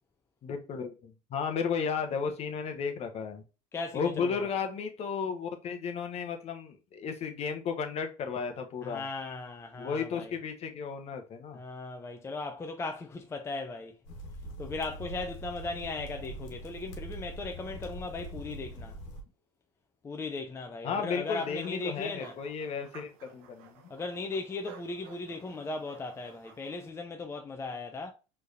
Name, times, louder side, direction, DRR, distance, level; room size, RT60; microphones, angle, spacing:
voice 1, 0.4-3.4 3.9-9.1 9.8-11.6 20.8-23.8, left 6 dB, 40° left, 0.8 m, -34 dB
voice 2, 3.7-4.5 8.8-10.4 11.5-14.0 14.6-19.0 20.0-22.3 23.9-28.1, left 3 dB, 15° left, 0.5 m, -37 dB
sound 1, 14.0-19.2, right 1 dB, 80° left, 1.2 m, -43 dB
sound 2, 21.2-26.9, right 7 dB, 70° right, 0.8 m, -54 dB
4.5 x 3.3 x 2.6 m
supercardioid pair, 105°, 16 cm